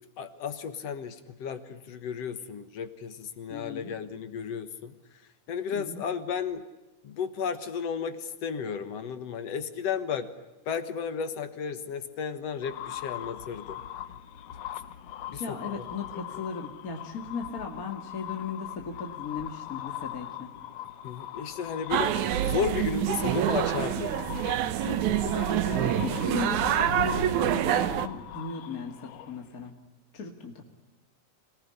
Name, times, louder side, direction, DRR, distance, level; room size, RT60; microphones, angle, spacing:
voice 1, 0.2-4.9 5.5-6.6 7.0-10.3 10.7-13.8 15.2-15.8 16.1-16.4 21.0-24.2, left 7 dB, 55° left, 11 dB, 1.9 m, -33 dB
voice 2, 3.5-3.9 5.7-6.0 15.4-20.5 23.1-23.2 23.6-23.7 24.2-24.4 24.8-29.7 30.1-30.6, left 4 dB, 30° left, 3 dB, 1.8 m, -37 dB
sound 1, 12.6-29.7, left 11 dB, 70° left, 1.5 m, -40 dB
sound 2, 21.9-28.1, right 11 dB, 70° right, 2.1 m, -26 dB
26.5 x 19.0 x 9.9 m, 1.1 s
omnidirectional pair, 4.2 m